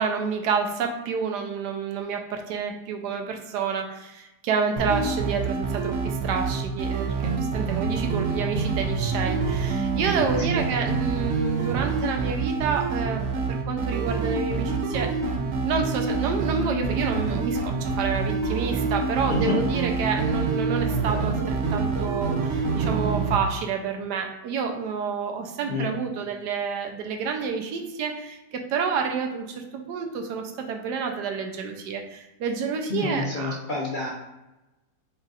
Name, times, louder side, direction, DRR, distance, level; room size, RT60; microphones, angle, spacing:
voice 1, 0.0-15.1 15.6-33.6, right 5 dB, 80° right, 4 dB, 1.2 m, -29 dB
sound 1, 4.8-23.4, right 4 dB, 65° right, 0.7 m, -26 dB
voice 2, 19.3-19.6 25.7-26.0 32.9-34.1, left 3 dB, 65° left, -4 dB, 0.5 m, -28 dB
4.1 x 2.4 x 4.0 m, 1.0 s
omnidirectional pair, 1.8 m